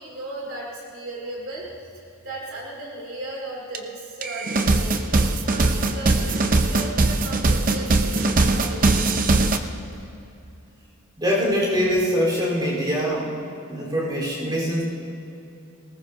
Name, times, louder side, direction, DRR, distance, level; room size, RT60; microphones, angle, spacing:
voice 1, 0.0-1.7 1.9-6.3 6.6-9.1, right 2 dB, 65° right, -3 dB, 2.8 m, -36 dB
sound 1, 3.7-3.8 4.2-9.6, right 2 dB, 35° right, 0.7 m, -21 dB
voice 2, 11.2-13.4 13.7-14.8, equal, 20° right, -4 dB, 3.9 m, -23 dB
20.0 x 19.0 x 2.7 m, 2.8 s
head